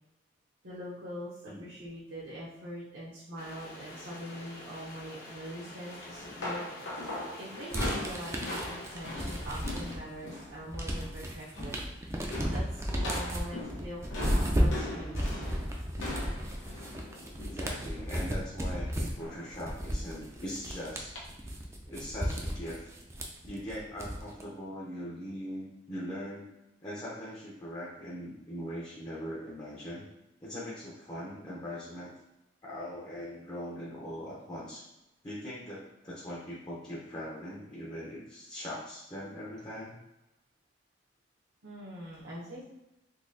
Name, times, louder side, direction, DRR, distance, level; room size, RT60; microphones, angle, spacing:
voice 1, 0.6-6.7 7.1-15.4 41.6-42.6, equal, 70° right, -8 dB, 0.9 m, -43 dB
voice 2, 1.4-1.8 17.4-21.2 21.9-22.9 23.4-26.5 26.8-30.1 30.4-32.1 32.6-34.8 35.2-40.0, equal, 25° left, -6 dB, 0.6 m, -41 dB
sound 1, 3.4-10.0, left 1 dB, 55° left, 0.8 m, -48 dB
sound 2, 6.0-10.6 10.8-11.2 11.4-11.9 12.3-18.3 19.2-19.6 19.9-20.1 21.2-21.3, left 2 dB, 90° left, 1.0 m, -40 dB
sound 3, 7.7-10.1 10.5-24.4, equal, 15° right, 0.4 m, -34 dB
3.9 x 2.7 x 2.6 m, 0.94 s
head